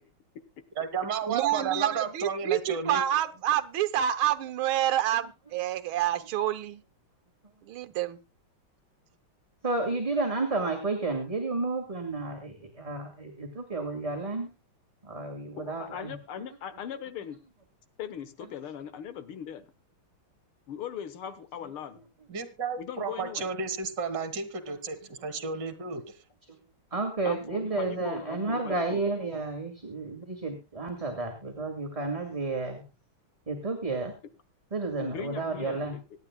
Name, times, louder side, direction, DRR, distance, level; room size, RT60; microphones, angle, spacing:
voice 1, 0.8-3.0 22.3-26.0, right 5 dB, 55° right, 11 dB, 2.3 m, -32 dB
voice 2, 1.3-6.8 7.6-8.2, right 12 dB, 75° right, 9 dB, 1.8 m, -28 dB
voice 3, 9.6-14.5 15.0-16.2 26.9-32.8 33.5-34.1 34.7-36.0, right 3 dB, 15° right, 3 dB, 2.1 m, -31 dB
voice 4, 15.6-17.4 18.0-19.7 20.7-22.0 22.8-23.5 27.2-29.0 35.0-36.0, left 8 dB, 80° left, 13 dB, 2.0 m, -39 dB
25.5 x 10.0 x 2.2 m, 0.26 s
omnidirectional pair, 2.4 m